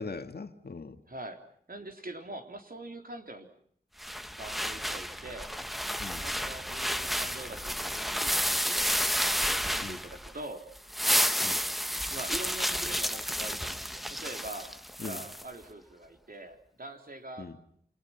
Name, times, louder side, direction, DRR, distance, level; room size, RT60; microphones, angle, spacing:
voice 1, 0.0-1.0 6.0-6.2 9.8-10.0 11.4-11.6 15.0-15.2 17.4-17.6, left 4 dB, 70° left, 2.2 m, -40 dB
voice 2, 1.1-1.4 1.7-3.5 4.4-5.5 6.2-10.6 12.1-14.8 15.0-17.5, right 2 dB, 55° right, 3.9 m, -43 dB
sound 1, 4.0-10.4 10.7-15.4, equal, ahead, 1.4 m, -31 dB
28.5 x 28.5 x 5.9 m
wide cardioid pair, 55°, 17 cm